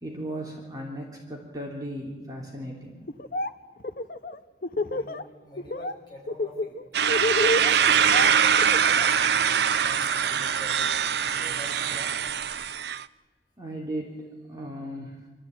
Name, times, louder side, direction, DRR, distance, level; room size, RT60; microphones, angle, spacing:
voice 1, 0.0-2.9 13.6-15.1, right 1 dB, 20° right, -2 dB, 3.2 m, -36 dB
Laughter, 3.1-3.5 3.8-5.2 5.6-5.9 6.3-9.1, left 2 dB, 55° left, 0.8 m, -29 dB
voice 2, 4.8-6.8 7.5-8.8 9.7-11.0 11.2-12.3, equal, 25° left, -3 dB, 6.1 m, -46 dB
sound 1, 6.9-13.0, right 7 dB, 75° right, 0.6 m, -23 dB
25.0 x 13.5 x 9.1 m, 1.3 s
head